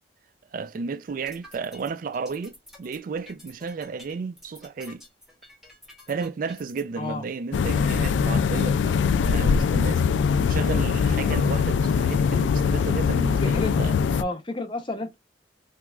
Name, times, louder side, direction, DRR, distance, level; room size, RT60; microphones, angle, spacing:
voice 1, 0.5-5.0 6.1-10.0 10.4-13.9, right 5 dB, 45° right, 0.3 m, -33 dB
sound 1, 1.1-6.8, left 1 dB, ahead, 1.0 m, -49 dB
sound 2, 7.5-14.2, left 6 dB, 75° left, 0.3 m, -22 dB
voice 2, 13.4-13.7 14.2-15.2, left 2 dB, 25° left, 0.6 m, -31 dB
3.4 x 3.0 x 2.3 m
head